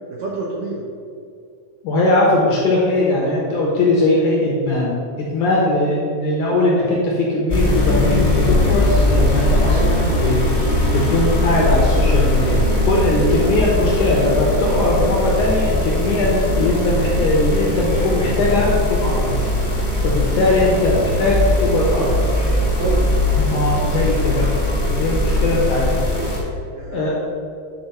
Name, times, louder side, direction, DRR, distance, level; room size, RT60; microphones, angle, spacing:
voice 1, 0.1-0.9 13.9-14.4 21.7-22.0 22.6-23.1 26.7-27.2, right 2 dB, 75° right, -3 dB, 2.0 m, -28 dB
voice 2, 1.8-19.5 20.0-22.0 23.5-24.5 24.9-26.0 26.9-27.1, left 2 dB, 70° left, -4 dB, 2.0 m, -19 dB
sound 1, 7.5-26.4, left 1 dB, 35° left, 0.9 m, -19 dB
9.5 x 4.4 x 5.6 m, 2.4 s
omnidirectional pair, 4.8 m